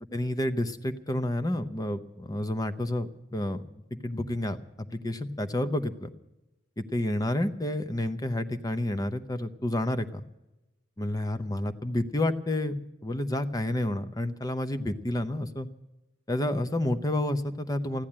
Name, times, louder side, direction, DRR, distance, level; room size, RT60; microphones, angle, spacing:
voice 1, 0.1-6.1 6.8-10.2 11.0-15.7 16.3-18.0, left 1 dB, 20° left, 10 dB, 0.8 m, -30 dB
15.0 x 10.5 x 8.6 m, 0.97 s
head